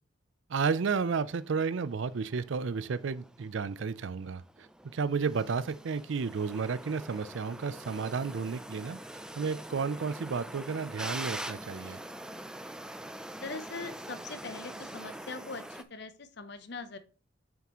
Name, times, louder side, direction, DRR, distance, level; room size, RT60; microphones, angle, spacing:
voice 1, 0.5-9.0 9.4-12.0, right 5 dB, 65° right, 0.4 m, -32 dB
sound 1, 0.7-15.8, right 1 dB, 5° right, 0.3 m, -44 dB
voice 2, 13.4-17.0, left 3 dB, 55° left, 0.7 m, -41 dB
7.3 x 5.9 x 3.0 m
head